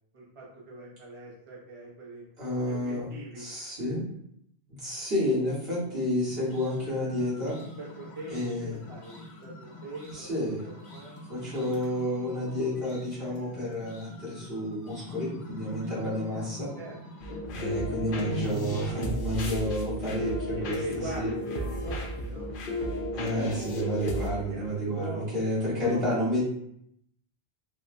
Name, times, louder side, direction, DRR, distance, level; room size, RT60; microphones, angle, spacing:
voice 1, 0.1-2.2 2.7-3.5 7.8-10.3 10.6-11.2 16.3-16.5 16.8-17.0 17.3-17.4 20.6-22.5 24.5-25.3 25.7-26.1, right 2 dB, 35° right, -4 dB, 0.6 m, -41 dB
voice 2, 2.4-3.1 3.3-4.0 4.8-7.6 8.3-8.8 10.1-10.6 11.3-16.7 17.5-20.8 21.1-21.3 23.1-26.4, equal, 70° right, -9 dB, 1.7 m, -30 dB
sound 1, 6.3-18.4, left 1 dB, 90° left, 1.0 m, -45 dB
sound 2, 17.2-24.3, left 1 dB, 60° left, 0.7 m, -33 dB
3.7 x 2.1 x 2.6 m, 0.73 s
omnidirectional pair, 1.1 m